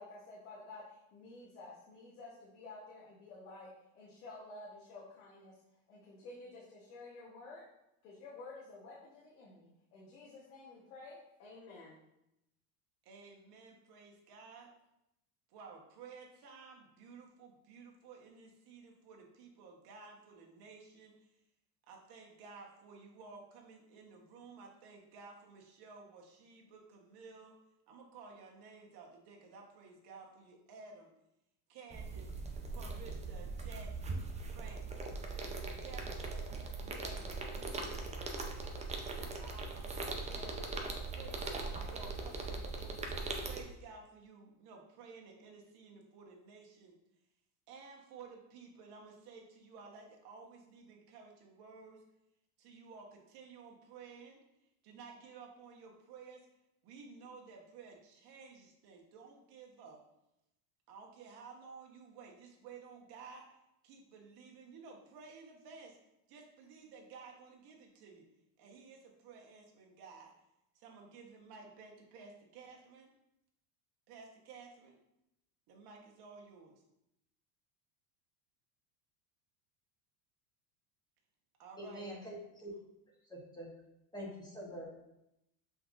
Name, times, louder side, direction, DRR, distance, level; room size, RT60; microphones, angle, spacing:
voice 1, 0.0-5.5 5.9-7.6 8.0-12.0, left 2 dB, 80° left, -5 dB, 1.3 m, -52 dB
voice 2, 13.0-14.7 15.5-21.3 21.9-27.5 27.9-31.1 31.7-32.3 32.7-34.1 34.5-34.8 35.3-35.5 35.8-36.4 36.8-38.0 39.2-43.0 43.4-46.9 47.7-52.0 52.6-54.4 54.8-56.5 56.8-60.0 60.9-63.6 63.8-66.0 66.3-68.2 68.6-70.3 70.7-73.1 74.1-75.0 75.7-76.8 81.6-82.1, right 4 dB, 55° right, 0 dB, 1.3 m, -54 dB
sound 1, 31.9-43.6, right 3 dB, 15° right, 0.6 m, -40 dB
voice 3, 81.8-82.7 83.3-83.7 84.1-84.9, equal, 10° left, -3 dB, 1.5 m, -45 dB
5.8 x 3.6 x 2.5 m, 0.86 s
supercardioid pair, 100°, 45 cm